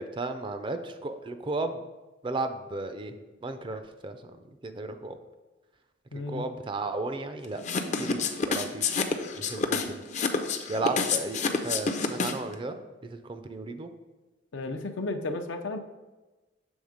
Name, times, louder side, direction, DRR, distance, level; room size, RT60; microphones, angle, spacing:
voice 1, 0.0-1.8 2.2-4.2 4.6-5.2 6.3-7.6 8.0-8.9 9.3-10.0 10.7-13.9, right 2 dB, 25° right, 8 dB, 0.4 m, -34 dB
voice 2, 6.1-6.4 14.5-15.8, left 2 dB, 80° left, 6 dB, 0.6 m, -33 dB
sound 1, 7.6-12.5, left 5 dB, 40° left, 0.5 m, -28 dB
7.1 x 3.6 x 5.0 m, 1.2 s
head